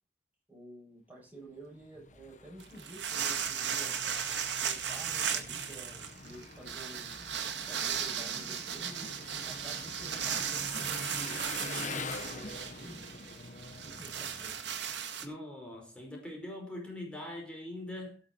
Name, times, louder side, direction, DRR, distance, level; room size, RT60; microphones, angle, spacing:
voice 1, 0.5-4.0 4.6-7.2 7.5-13.0 13.8-14.5, right 1 dB, 10° right, 7.8 m, -50 dB
Engine, 1.6-15.1, left 3 dB, 45° left, 1.3 m, -46 dB
sound 1, 2.6-15.2, right 8 dB, 85° right, 1.9 m, -36 dB
voice 2, 15.2-18.2, left 1 dB, 5° left, 4.9 m, -42 dB
16.5 x 7.2 x 4.5 m
head